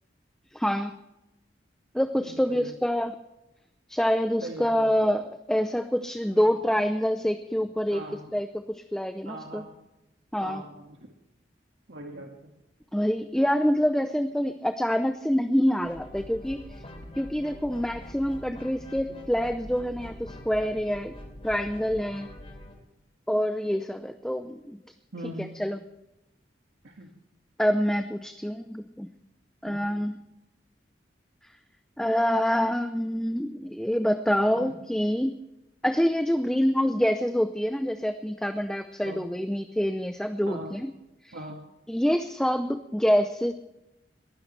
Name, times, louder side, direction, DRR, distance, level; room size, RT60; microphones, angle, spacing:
voice 1, 0.5-0.9 1.9-3.2 3.9-8.0 8.3-9.6 10.3-10.6 12.9-16.7 17.2-21.1 21.4-22.3 23.3-24.8 25.4-25.8 27.6-29.1 29.6-30.2 32.0-35.4 35.8-40.9 41.2-41.4 41.9-43.5, equal, 5° left, 8 dB, 0.6 m, -26 dB
voice 2, 2.2-2.7 4.4-4.9 6.3-6.5 7.9-8.3 9.2-9.7 10.4-11.1 11.9-12.5 25.1-25.5 26.8-27.1 29.6-29.8 34.6-34.7 39.0-39.2 40.5-40.7 41.3-41.6, right 1 dB, 85° right, 0 dB, 1.9 m, -41 dB
sound 1, 15.8-22.7, left 1 dB, 35° left, 3.3 m, -44 dB
21.5 x 16.0 x 3.3 m, 0.92 s
head